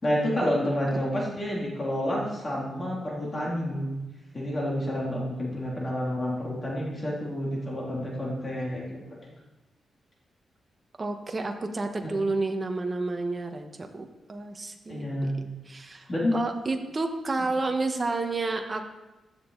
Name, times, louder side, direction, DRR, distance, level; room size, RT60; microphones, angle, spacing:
voice 1, 0.0-3.9 4.3-9.3 12.0-12.1 14.9-15.4 16.1-16.4, equal, 25° left, -4 dB, 3.1 m, -29 dB
voice 2, 11.0-18.9, right 3 dB, 25° right, 4 dB, 1.4 m, -30 dB
15.5 x 11.0 x 4.1 m, 1.1 s
wide cardioid pair, 140°, 0 cm